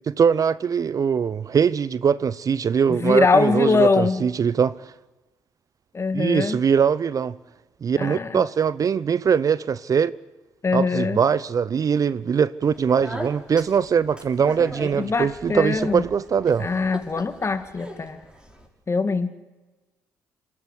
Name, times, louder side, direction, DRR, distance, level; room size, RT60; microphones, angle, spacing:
voice 1, 0.1-4.8 6.1-7.4 7.8-10.1 10.7-16.7, right 7 dB, 45° right, 0.6 m, -21 dB
voice 2, 2.9-4.2 5.9-6.6 8.0-8.4 10.6-11.2 15.0-16.0 16.6-18.2 18.9-19.3, left 4 dB, 35° left, 2.0 m, -22 dB
Speech, 12.6-18.7, equal, 10° right, 5.5 m, -38 dB
27.0 x 12.5 x 9.7 m
hypercardioid pair, 50°, 8 cm